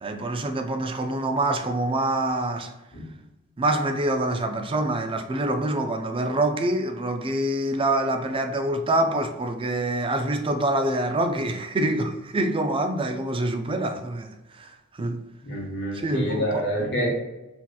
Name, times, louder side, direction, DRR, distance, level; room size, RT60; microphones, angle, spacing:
voice 1, 0.0-2.7 3.6-15.2 15.9-16.7, right 1 dB, 25° right, 0.4 m, -26 dB
voice 2, 15.4-17.1, equal, 55° left, 1.4 m, -27 dB
6.0 x 2.9 x 2.3 m
head